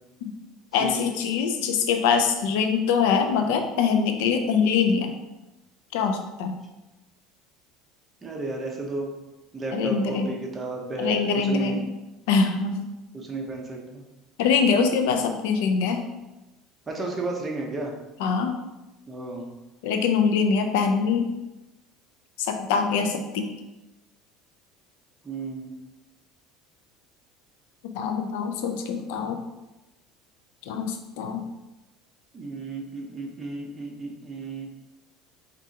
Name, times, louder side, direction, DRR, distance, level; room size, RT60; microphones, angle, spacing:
voice 1, 0.7-5.1 5.9-6.6 9.7-10.3 11.0-11.8 12.3-12.8 14.4-16.0 18.2-18.5 19.8-21.3 22.4-23.5 27.9-29.4 30.7-31.4, left 5 dB, 80° left, 5 dB, 0.5 m, -23 dB
voice 2, 8.2-9.1 9.5-11.8 13.1-14.0 16.9-17.9 19.1-19.5 25.2-25.7 32.3-34.7, right 3 dB, 20° right, 0 dB, 1.0 m, -33 dB
4.8 x 3.6 x 2.9 m, 1.0 s
supercardioid pair, 120°, 0 cm